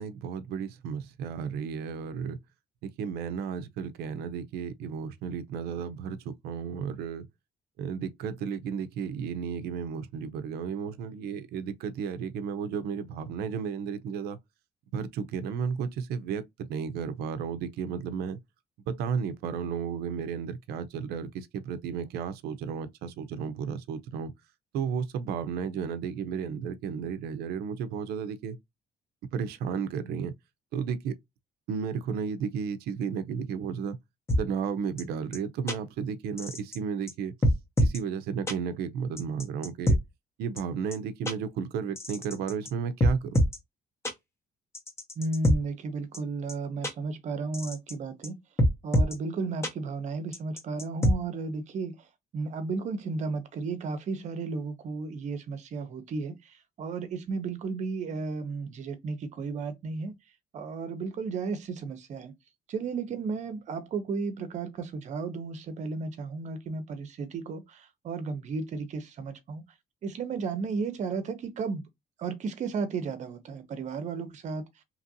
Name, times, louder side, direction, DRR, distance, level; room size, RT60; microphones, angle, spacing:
voice 1, 0.0-2.4 2.8-7.3 7.8-14.4 14.9-18.4 18.9-24.3 24.7-28.6 29.3-30.3 30.7-31.2 31.7-34.0 34.4-37.3 37.8-40.0 40.4-43.4, right 6 dB, 85° right, 0.4 m, -33 dB
sound 1, 34.3-34.4 35.0-35.1 35.3-35.4 35.7-35.8 36.4-36.8 37.1-37.2 37.4-38.0 38.5-38.6 39.2-40.0 40.6-40.7 40.9-41.0 41.2-41.3 42.0-42.7 43.0-43.6 44.0-44.1 44.7-45.6 46.1-46.2 46.5-46.6 46.8-46.9 47.5-47.9 48.2-48.3 48.6-49.1 49.6-49.7 50.3-51.1, equal, 15° left, 0.7 m, -24 dB
voice 2, 45.2-48.4 48.8-52.0 52.3-60.1 60.5-62.3 62.7-69.6 70.0-71.9 72.2-74.7, right 4 dB, 45° right, 0.7 m, -34 dB
2.9 x 2.5 x 2.7 m
cardioid pair, 135°, 16 cm